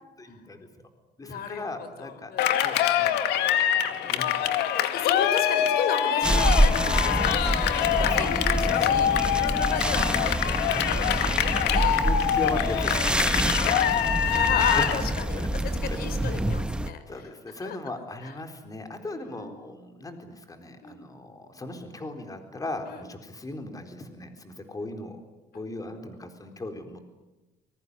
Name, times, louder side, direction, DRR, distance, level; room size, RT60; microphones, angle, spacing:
voice 1, 0.2-0.9 1.2-2.3 2.6-5.1 6.3-6.4 7.9-8.6 9.8-10.3 10.7-10.9 11.2-11.3 11.9-14.0 14.6-16.4 16.9-25.2 25.5-27.0, left 2 dB, 20° left, 6 dB, 4.1 m, -38 dB
voice 2, 1.2-2.5 4.9-11.3 11.7-12.1 13.9-17.0 17.6-17.8 18.2-18.3 19.0-19.5 20.8-21.0 22.9-23.0 25.5-25.6, left 7 dB, 65° left, 11 dB, 4.3 m, -34 dB
Cheering, 2.4-15.0, left 10 dB, 85° left, 2.1 m, -25 dB
sound 1, 6.2-16.9, right 1 dB, 5° right, 1.1 m, -26 dB
24.5 x 22.0 x 9.8 m, 1.1 s
cardioid pair, 110°, 17 cm